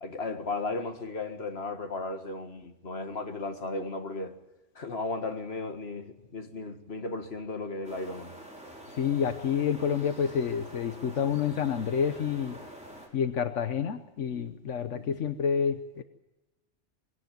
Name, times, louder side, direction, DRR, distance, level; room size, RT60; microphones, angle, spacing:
voice 1, 0.0-4.3 4.8-8.3 14.9-15.3, left 3 dB, 60° left, 2.2 m, -35 dB
sound 1, 7.8-13.1, right 1 dB, 5° right, 5.4 m, -47 dB
voice 2, 8.9-12.6 13.1-16.0, left 7 dB, 85° left, 1.4 m, -28 dB
22.0 x 17.5 x 9.4 m
omnidirectional pair, 1.2 m